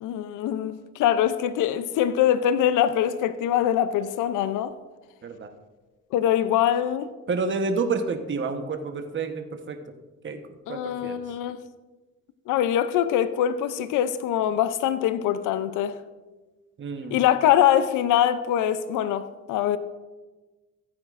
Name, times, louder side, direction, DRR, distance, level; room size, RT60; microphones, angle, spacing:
voice 1, 0.0-4.8 6.1-7.1 10.7-11.6 12.5-16.0 17.1-19.8, left 10 dB, 85° left, 0.5 m, -23 dB
voice 2, 7.3-9.8 10.2-10.4 10.7-11.1 16.8-17.2, right 4 dB, 40° right, 1.0 m, -29 dB
15.0 x 8.8 x 2.5 m
cardioid pair, 90°, 30 cm